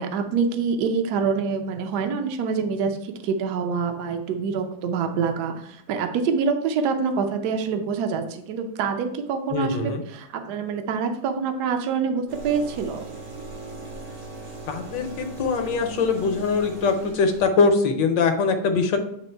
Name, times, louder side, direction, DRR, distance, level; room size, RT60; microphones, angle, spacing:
voice 1, 0.0-13.0, right 5 dB, 65° right, 6 dB, 1.1 m, -26 dB
voice 2, 9.5-10.0 14.7-19.0, left 4 dB, 65° left, 6 dB, 1.4 m, -22 dB
sound 1, 12.3-17.4, right 3 dB, 80° right, 2.5 m, -39 dB
8.9 x 3.1 x 4.4 m, 0.74 s
omnidirectional pair, 2.2 m